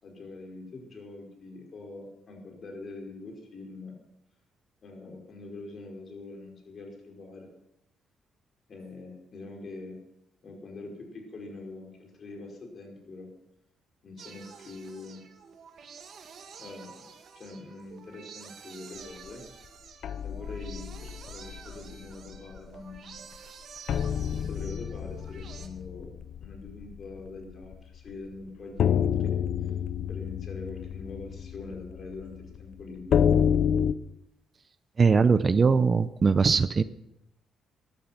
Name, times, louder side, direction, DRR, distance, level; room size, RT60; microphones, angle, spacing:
voice 1, 0.0-3.9 4.8-7.5 8.7-10.0 10.4-13.3 14.0-15.2 16.6-16.9 17.3-19.4 20.2-23.3 24.3-29.3 30.1-33.3, left 3 dB, 50° left, 2 dB, 5.0 m, -44 dB
sound 1, 14.2-25.7, right 6 dB, 60° right, 1.9 m, -49 dB
sound 2, 20.0-21.9 22.3-22.6 23.0-23.1 23.9-27.7 28.1-28.2 28.8-33.9, left 8 dB, 65° left, 0.6 m, -28 dB
voice 2, 35.0-36.8, right 5 dB, 35° right, 15 dB, 0.6 m, -21 dB
15.0 x 12.0 x 5.9 m, 0.83 s
cardioid pair, 90°, 0 cm